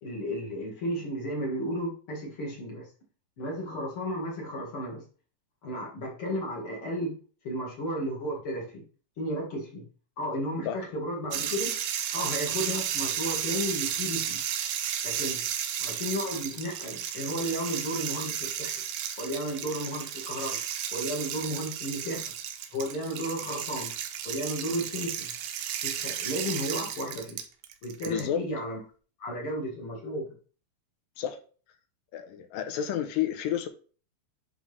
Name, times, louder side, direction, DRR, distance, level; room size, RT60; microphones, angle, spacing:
voice 1, 0.0-2.9 3.4-5.0 5.6-7.1 7.4-8.8 9.2-9.8 10.2-11.7 12.1-14.4 15.0-15.4 15.8-18.7 19.2-20.6 20.9-22.3 22.7-23.9 24.2-25.3 25.8-27.4 27.8-28.8 29.2-30.3, equal, 45° left, 2.2 m, -33 dB
sound 1, 11.3-28.2, right 9 dB, 90° right, 2.6 m, -33 dB
voice 2, 28.1-28.4 31.2-31.4 32.1-33.7, left 10 dB, 80° left, 2.4 m, -30 dB
11.0 x 3.8 x 3.3 m
omnidirectional pair, 4.1 m